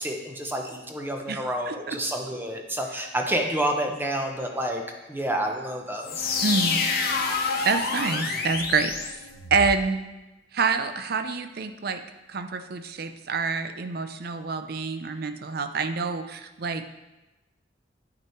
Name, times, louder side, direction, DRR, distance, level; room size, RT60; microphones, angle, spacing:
voice 1, 0.0-4.8 5.1-6.3, right 1 dB, 10° right, 2 dB, 0.9 m, -29 dB
voice 2, 1.3-2.0 6.4-6.8 7.6-9.2 9.5-10.0 10.5-12.0 12.3-16.9, right 4 dB, 60° right, 9 dB, 0.6 m, -27 dB
sound 1, 6.0-9.8, left 4 dB, 55° left, 1.0 m, -28 dB
9.4 x 6.0 x 4.5 m, 1.1 s
head